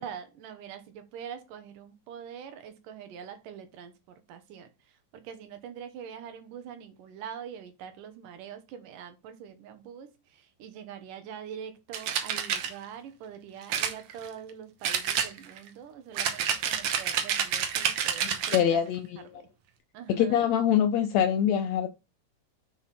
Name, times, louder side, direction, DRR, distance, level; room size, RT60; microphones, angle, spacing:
voice 1, 0.0-18.8 19.2-19.5 19.9-20.5, right 8 dB, 85° right, 2.7 m, -44 dB
sound 1, 11.9-12.7 13.7-14.5 14.8-15.7 16.2-18.7, right 8 dB, 65° right, 1.7 m, -29 dB
voice 2, 18.5-19.2 20.2-21.9, left 9 dB, 80° left, 1.6 m, -24 dB
6.3 x 5.7 x 4.1 m
omnidirectional pair, 3.7 m